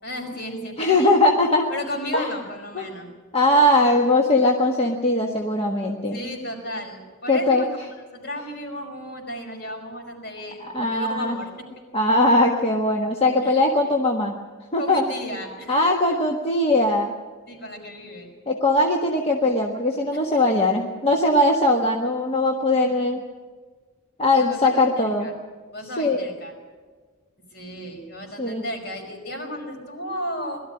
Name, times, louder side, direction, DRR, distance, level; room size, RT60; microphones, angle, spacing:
voice 1, 0.0-1.1 1.7-3.1 6.1-7.7 8.1-11.7 13.4-13.5 14.8-15.9 17.5-18.3 20.1-20.4 24.3-25.3 25.7-26.5 27.5-30.6, equal, 55° left, 2 dB, 5.3 m, -34 dB
voice 2, 0.8-1.7 2.1-2.3 2.7-2.9 3.3-6.2 7.3-7.6 10.6-11.4 11.9-14.4 14.7-15.0 15.7-17.1 18.5-23.2 24.2-25.3 26.0-26.2 28.4-28.6, left 1 dB, 30° left, 1 dB, 1.4 m, -20 dB
21.5 x 13.0 x 9.9 m, 1.5 s
head